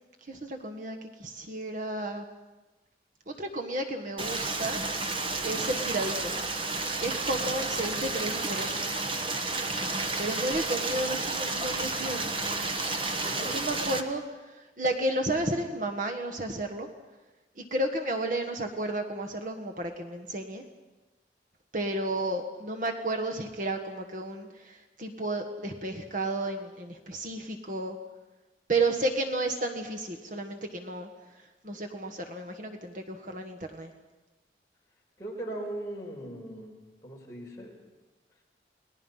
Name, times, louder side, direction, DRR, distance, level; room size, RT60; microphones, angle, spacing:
voice 1, 0.3-2.2 3.3-4.8 5.4-6.3 7.0-8.9 10.2-12.6 13.4-16.9 17.6-20.6 21.7-28.0 28.7-31.1 31.6-33.9, right 2 dB, 45° right, 3 dB, 1.6 m, -32 dB
Stream, 4.2-14.0, right 3 dB, 30° right, 1.3 m, -31 dB
voice 2, 13.2-13.6 35.2-36.7 37.0-37.8, right 1 dB, 20° left, -3 dB, 5.3 m, -39 dB
29.5 x 20.0 x 5.7 m, 1.1 s
head